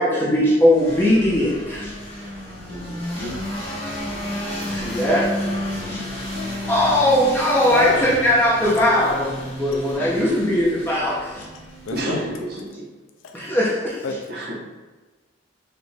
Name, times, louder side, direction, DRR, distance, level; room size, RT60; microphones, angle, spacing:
voice 1, 0.0-1.9 3.2-3.3 4.7-5.3 5.9-6.0 6.7-11.2 13.3-14.0, left 1 dB, 10° left, -6 dB, 0.8 m, -19 dB
sound 1, 0.7-12.5, left 1 dB, 30° left, 1.3 m, -32 dB
voice 2, 2.7-3.3 4.3-4.4 11.9-12.8 14.3-14.5, equal, 55° right, -4 dB, 1.1 m, -30 dB
voice 3, 7.7-8.0 11.4-11.5 11.9-12.2 13.2-13.4 14.0-14.2, left 5 dB, 90° left, 4 dB, 0.4 m, -26 dB
5.1 x 2.5 x 3.3 m, 1.2 s
head